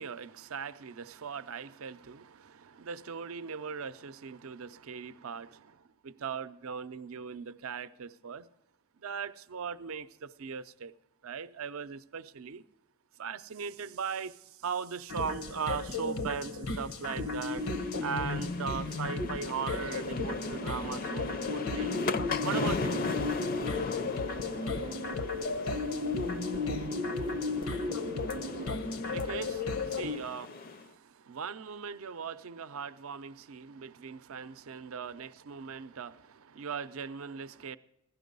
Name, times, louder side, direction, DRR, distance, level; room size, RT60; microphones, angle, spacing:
voice 1, 0.0-8.5 9.0-10.9 11.2-12.6 13.2-17.6 18.0-22.0 22.4-23.0 28.8-37.8, right 6 dB, 80° right, 0.5 m, -39 dB
sound 1, 15.1-30.2, left 3 dB, 85° left, 1.0 m, -34 dB
sound 2, 17.4-30.9, left 4 dB, 45° left, 0.5 m, -39 dB
sound 3, 19.7-28.8, right 4 dB, 35° right, 0.5 m, -47 dB
16.5 x 12.0 x 5.3 m
head